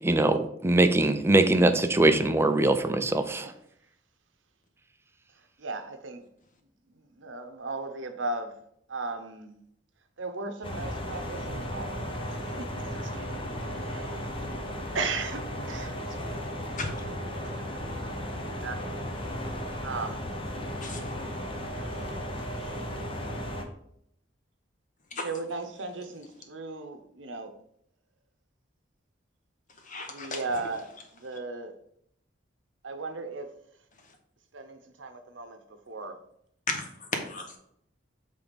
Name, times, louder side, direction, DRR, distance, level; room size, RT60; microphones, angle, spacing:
voice 1, 0.0-3.5, right 2 dB, 15° right, 0.4 m, -22 dB
voice 2, 5.6-6.2 6.9-8.6 8.9-9.5 10.2-12.0 12.3-14.3 14.9-16.4 17.7-18.8 19.8-20.4 21.9-22.1 22.5-22.8 25.2-27.5 30.1-31.7 32.8-33.5 34.5-35.6 35.9-36.1, right 3 dB, 90° right, 0.8 m, -37 dB
sound 1, 10.6-23.6, equal, 30° left, 0.8 m, -35 dB
voice 3, 20.8-21.1 25.1-25.2 29.9-30.4 36.7-37.5, left 3 dB, 45° left, 1.1 m, -34 dB
5.9 x 3.5 x 5.1 m
head